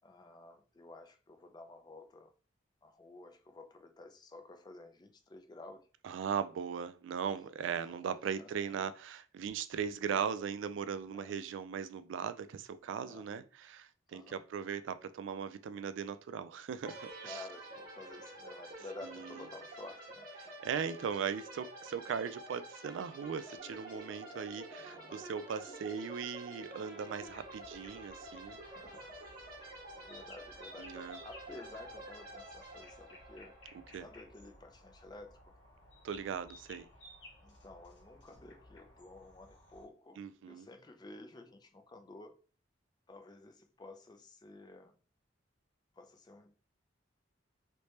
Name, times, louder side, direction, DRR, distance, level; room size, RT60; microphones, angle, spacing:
voice 1, 0.0-2.3 2.8-5.9 7.4-7.5 7.8-8.7 11.1-11.4 13.0-13.3 14.1-14.4 17.2-20.3 24.8-25.2 28.6-29.2 29.5-33.6 34.0-35.5 37.4-42.4 43.1-45.0 46.0-46.6, left 2 dB, 20° left, 0.4 m, -52 dB
voice 2, 6.0-17.4 19.1-19.4 20.4-28.6 30.8-31.2 33.9-34.1 36.0-36.9 40.2-40.7, right 7 dB, 70° right, 0.3 m, -39 dB
sound 1, 16.8-34.4, right 2 dB, 50° right, 1.2 m, -49 dB
sound 2, 23.6-28.6, right 1 dB, 5° right, 0.9 m, -58 dB
sound 3, 27.2-39.8, left 1 dB, 70° left, 1.3 m, -58 dB
3.2 x 2.8 x 3.1 m
head